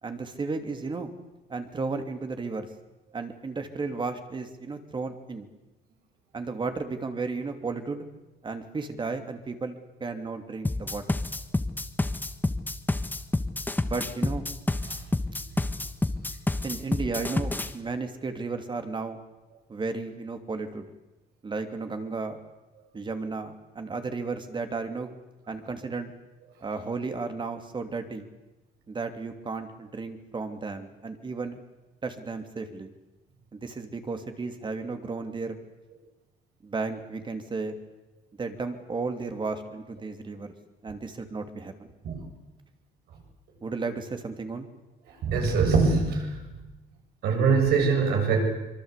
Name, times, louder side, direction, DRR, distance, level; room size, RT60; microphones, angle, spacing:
voice 1, 0.0-1.1 1.5-2.7 3.1-5.5 6.3-8.1 8.4-11.2 13.8-14.4 16.6-19.2 19.7-20.9 21.4-22.4 22.9-25.1 25.5-26.1 26.6-28.3 28.9-31.6 32.0-32.9 33.5-35.6 36.6-37.8 38.4-40.5 40.8-41.9 43.6-44.7, right 4 dB, 30° right, 7 dB, 2.8 m, -34 dB
sound 1, 10.6-17.7, left 2 dB, 10° left, 1.5 m, -28 dB
voice 2, 45.1-46.5 47.2-48.4, right 5 dB, 75° right, 3 dB, 7.4 m, -23 dB
25.0 x 23.5 x 8.3 m, 1.1 s
cardioid pair, 110°, 17 cm